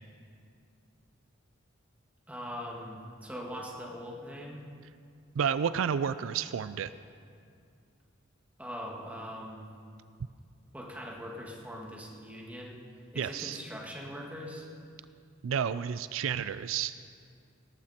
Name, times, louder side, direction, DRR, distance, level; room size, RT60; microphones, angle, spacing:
voice 1, 2.3-4.6 8.6-9.7 10.7-12.8 13.1-14.7, equal, 5° right, -2 dB, 2.0 m, -41 dB
voice 2, 5.4-6.9 13.2-13.6 15.4-17.0, right 7 dB, 75° right, 14 dB, 0.4 m, -31 dB
18.0 x 14.0 x 4.3 m, 2.4 s
head